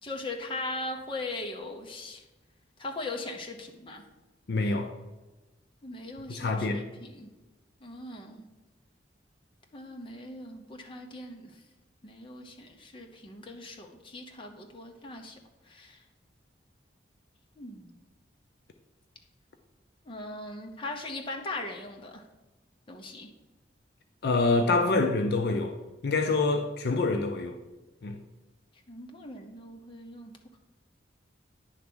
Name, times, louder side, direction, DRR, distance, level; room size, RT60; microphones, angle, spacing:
voice 1, 0.0-2.2 2.8-4.0 5.8-7.3 7.8-8.4 9.7-11.6 12.0-15.4 15.7-16.0 17.6-17.9 20.0-22.3 22.9-23.3 28.9-30.3, left 2 dB, 25° left, 0.8 m, -39 dB
voice 2, 4.5-4.9 6.3-6.8 24.2-25.8 26.0-27.6 28.0-28.2, left 3 dB, 55° left, 0.5 m, -26 dB
9.8 x 3.5 x 6.1 m
head